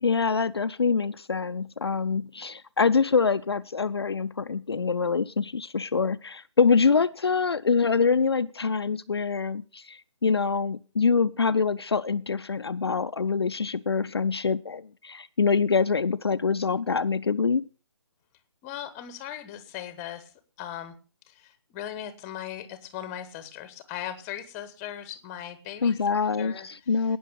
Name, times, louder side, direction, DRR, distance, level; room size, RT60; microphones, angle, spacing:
voice 1, 0.0-17.6 25.8-27.2, left 5 dB, 55° left, 11 dB, 0.5 m, -25 dB
voice 2, 18.6-20.3 20.6-20.9 21.3-26.7, left 11 dB, 15° left, 12 dB, 1.0 m, -38 dB
18.0 x 6.3 x 6.4 m, 0.37 s
figure-of-eight pair, 145°, 16 cm